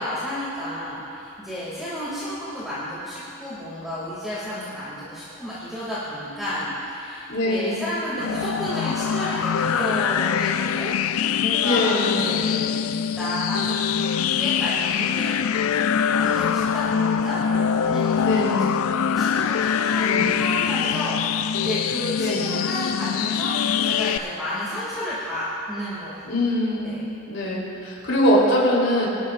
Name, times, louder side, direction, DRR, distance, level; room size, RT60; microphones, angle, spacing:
voice 1, 0.0-12.6 13.2-14.1 14.4-15.3 16.1-26.2 26.8-27.0, equal, ahead, -11 dB, 2.4 m, -31 dB
voice 2, 7.3-7.8 11.6-12.3 18.2-18.7 20.0-20.3 22.2-22.5 26.3-26.9 27.3-29.1, left 1 dB, 65° left, -5 dB, 3.5 m, -22 dB
sound 1, 8.2-24.2, left 8 dB, 80° left, 0.4 m, -23 dB
23.5 x 12.5 x 2.5 m, 2.8 s
head